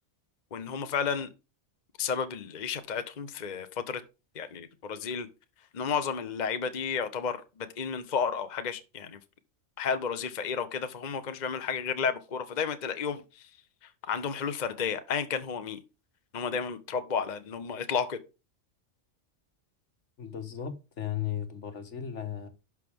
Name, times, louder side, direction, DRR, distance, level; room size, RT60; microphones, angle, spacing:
voice 1, 0.5-1.3 2.0-4.0 4.3-5.3 5.7-9.2 9.8-13.2 14.1-15.8 16.3-18.2, left 6 dB, 40° left, 0.9 m, -32 dB
voice 2, 20.2-22.5, left 9 dB, 70° left, 1.7 m, -35 dB
11.0 x 6.1 x 3.6 m
omnidirectional pair, 1.3 m